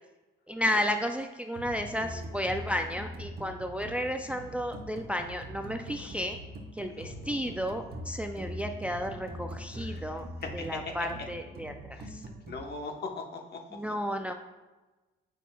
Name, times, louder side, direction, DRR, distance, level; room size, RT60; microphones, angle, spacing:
voice 1, 0.5-6.4 6.8-10.3 10.5-11.7 12.1-12.2 13.7-14.3, equal, 5° right, 5 dB, 0.3 m, -32 dB
sound 1, 1.5-12.5, equal, 50° right, 1.1 m, -42 dB
voice 2, 6.9-7.5 9.7-10.1 10.4-10.9 11.9-12.1 12.5-13.6, left 4 dB, 55° left, 3 dB, 1.0 m, -40 dB
8.2 x 5.7 x 2.3 m, 1.2 s
cardioid pair, 95°, 20 cm